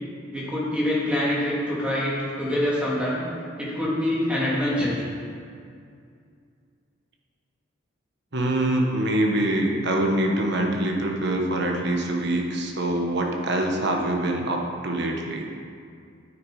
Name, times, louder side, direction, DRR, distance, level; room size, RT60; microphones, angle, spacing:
voice 1, 0.3-3.2 3.6-5.0, left 1 dB, 5° right, -7 dB, 2.5 m, -25 dB
voice 2, 8.3-15.4, right 1 dB, 60° right, 1 dB, 1.3 m, -24 dB
9.6 x 8.8 x 4.9 m, 2.3 s
head